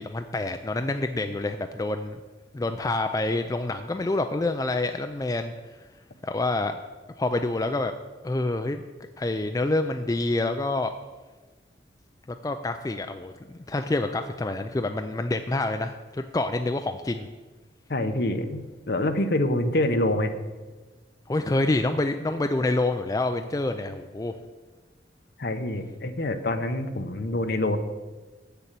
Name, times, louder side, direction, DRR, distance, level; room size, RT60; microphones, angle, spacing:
voice 1, 0.0-2.2 2.5-5.5 6.2-6.8 7.2-7.9 8.2-8.8 9.2-10.9 12.4-17.3 21.3-24.3, left 2 dB, 20° left, 7 dB, 0.3 m, -27 dB
voice 2, 17.9-20.3 25.4-27.8, left 1 dB, 55° left, 8 dB, 0.8 m, -26 dB
8.0 x 6.9 x 7.5 m, 1.3 s
head